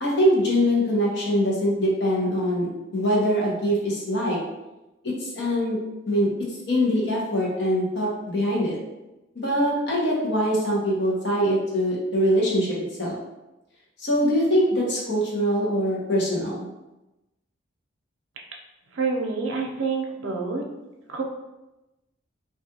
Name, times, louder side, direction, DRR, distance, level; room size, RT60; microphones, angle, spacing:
voice 1, 0.0-4.4 5.0-5.8 6.1-8.8 9.3-13.2 14.0-16.7, equal, 60° left, -4 dB, 0.8 m, -23 dB
voice 2, 18.9-20.6 21.1-21.2, right 4 dB, 85° right, 0 dB, 0.5 m, -27 dB
2.4 x 2.3 x 2.7 m, 1.0 s
head